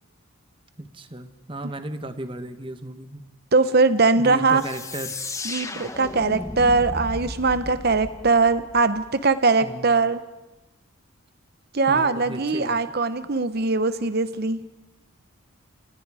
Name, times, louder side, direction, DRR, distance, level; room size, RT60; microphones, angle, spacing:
voice 1, 0.8-3.2 4.1-5.2 9.6-10.0 11.9-12.8, right 1 dB, 25° right, 10 dB, 1.3 m, -35 dB
voice 2, 3.5-4.6 5.4-10.2 11.7-14.7, right 3 dB, 45° right, 12 dB, 0.9 m, -21 dB
sound 1, 4.6-9.1, left 2 dB, 15° left, 1.1 m, -35 dB
29.0 x 28.0 x 4.9 m, 0.96 s
head